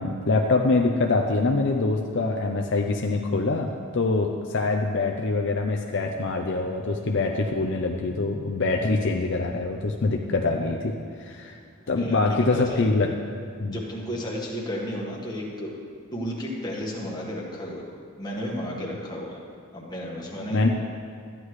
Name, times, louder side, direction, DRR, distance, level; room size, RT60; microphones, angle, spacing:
voice 1, 0.0-10.9 11.2-11.6 11.9-13.1 13.6-13.8 20.5-20.7, left 3 dB, 55° left, 2 dB, 0.5 m, -24 dB
voice 2, 11.8-12.8 13.6-15.8 16.1-17.9 18.2-19.4 19.7-20.6, equal, 20° left, -3 dB, 1.5 m, -33 dB
13.5 x 9.7 x 3.2 m, 2.2 s
head